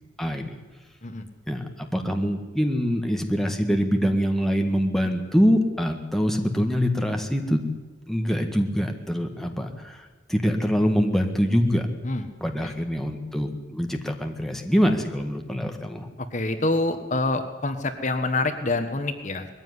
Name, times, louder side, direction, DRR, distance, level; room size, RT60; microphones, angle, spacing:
voice 1, 0.2-0.6 1.5-7.6 8.1-11.9 12.4-16.1, equal, ahead, 3 dB, 1.7 m, -24 dB
voice 2, 16.3-19.5, left 2 dB, 40° left, 8 dB, 1.3 m, -26 dB
20.5 x 15.0 x 9.6 m, 1.3 s
head